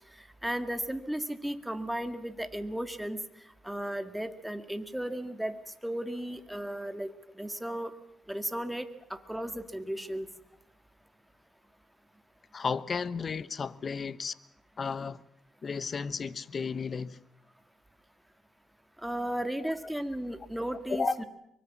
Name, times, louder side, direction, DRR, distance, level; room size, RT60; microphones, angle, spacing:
voice 1, 0.4-3.2 3.6-5.5 5.8-7.1 7.4-7.9 8.3-10.3 19.0-21.3, right 1 dB, 5° right, 2.0 m, -34 dB
voice 2, 12.5-14.3 14.8-15.2 15.6-17.2 20.9-21.1, left 5 dB, 40° left, 1.0 m, -33 dB
24.0 x 22.5 x 7.3 m
cardioid pair, 90°, 0 cm